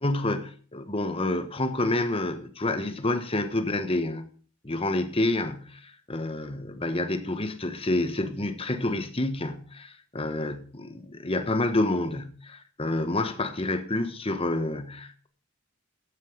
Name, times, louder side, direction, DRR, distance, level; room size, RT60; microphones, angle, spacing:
voice 1, 0.0-4.3 4.6-15.3, left 2 dB, 25° left, 1.2 m, -28 dB
14.0 x 9.6 x 5.1 m
head